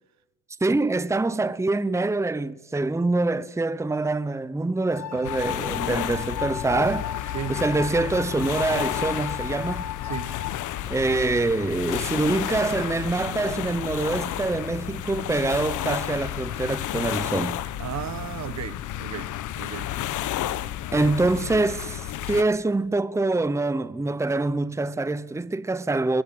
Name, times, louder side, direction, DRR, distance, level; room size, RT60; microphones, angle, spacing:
voice 1, 0.6-9.9 10.9-17.6 20.9-26.2, right 2 dB, 10° right, 0.9 m, -25 dB
sound 1, 4.9-10.5, left 9 dB, 60° left, 1.8 m, -35 dB
sound 2, 5.2-22.4, left 12 dB, 80° left, 1.2 m, -32 dB
voice 2, 17.8-19.9, right 10 dB, 65° right, 1.4 m, -35 dB
22.0 x 21.5 x 9.9 m
cardioid pair, 90°, 30 cm